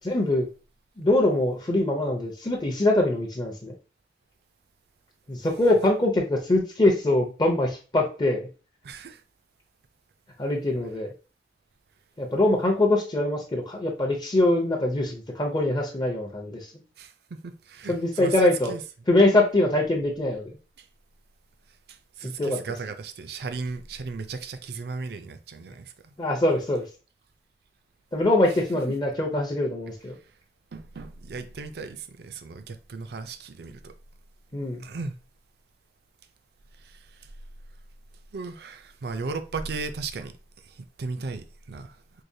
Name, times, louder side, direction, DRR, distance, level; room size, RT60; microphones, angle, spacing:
voice 1, 0.0-0.5 1.0-3.7 5.3-8.5 10.4-11.1 12.2-16.7 17.9-18.7 19.1-20.5 22.2-22.6 26.2-26.8 28.1-30.1 34.5-34.9, left 1 dB, 25° left, 0.6 m, -23 dB
voice 2, 8.8-9.2 17.0-18.8 20.8-20.9 21.9-26.1 30.7-33.9 34.8-35.1 36.8-37.3 38.3-40.3 40.6-42.0, right 4 dB, 60° right, 0.4 m, -36 dB
4.7 x 2.2 x 2.7 m
head